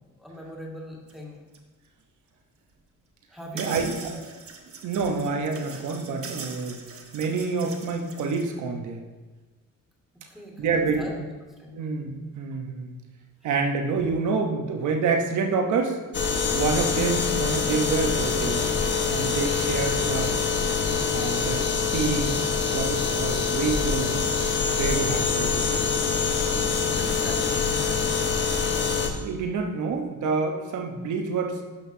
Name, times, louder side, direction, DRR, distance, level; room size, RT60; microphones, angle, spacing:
voice 1, 0.2-1.4 3.3-4.2 10.3-11.1 11.6-11.8 26.4-28.2, left 1 dB, ahead, -3 dB, 2.0 m, -41 dB
sound 1, 1.1-1.2 1.5-1.6 2.7-2.8 3.6-8.5, right 4 dB, 50° right, 1.2 m, -41 dB
voice 2, 3.5-3.9 4.8-6.8 7.1-9.0 10.6-11.1 11.7-12.9 13.4-16.0 16.5-18.6 19.1-20.4 21.1-22.5 22.7-24.3 24.7-25.7 29.2-31.6, right 4 dB, 75° right, 3 dB, 1.1 m, -27 dB
sound 2, 16.1-29.1, left 5 dB, 35° left, 1.1 m, -25 dB
12.0 x 5.8 x 2.8 m, 1.2 s
cardioid pair, 90°, 30 cm